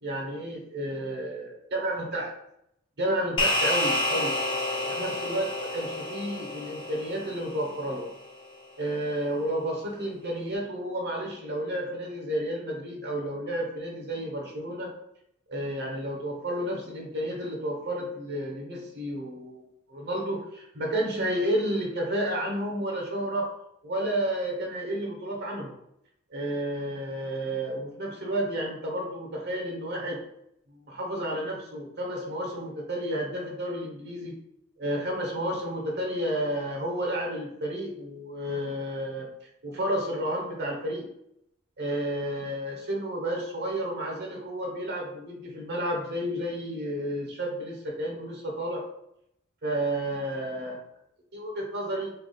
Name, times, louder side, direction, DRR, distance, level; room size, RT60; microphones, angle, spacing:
voice 1, 0.0-2.3 3.0-4.4 4.8-8.1 8.8-14.9 15.5-23.5 23.8-25.7 26.3-30.2 30.9-34.4 34.8-39.3 39.6-41.1 41.8-48.8 49.6-50.8 51.3-52.1, right 1 dB, 50° right, 0 dB, 0.9 m, -31 dB
sound 1, 3.4-8.0, left 2 dB, 25° left, 0.5 m, -29 dB
3.3 x 2.3 x 3.8 m, 0.77 s
head